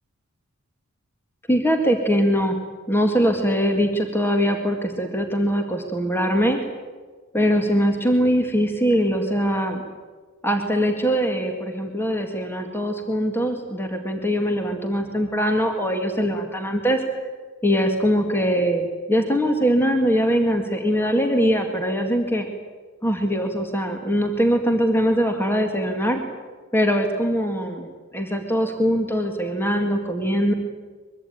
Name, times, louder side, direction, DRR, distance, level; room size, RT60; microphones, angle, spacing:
voice 1, 1.5-2.6 2.9-6.6 7.3-9.8 10.4-17.0 17.6-22.5 23.0-26.2 26.7-27.9 28.1-30.5, equal, 10° left, 4 dB, 2.1 m, -22 dB
23.5 x 23.0 x 9.3 m, 1.5 s
head